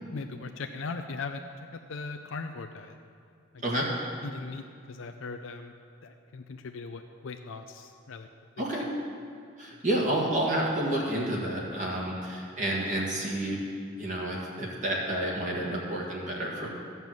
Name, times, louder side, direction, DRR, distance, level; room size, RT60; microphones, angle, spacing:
voice 1, 0.1-1.4 1.7-3.0 3.5-3.6 4.2-5.7 6.0-8.3 8.6-8.7, left 4 dB, 80° left, 6 dB, 0.5 m, -39 dB
voice 2, 8.6-8.9 9.6-13.6 14.0-16.7, right 1 dB, 35° right, -3 dB, 1.6 m, -30 dB
13.5 x 5.5 x 7.6 m, 2.3 s
head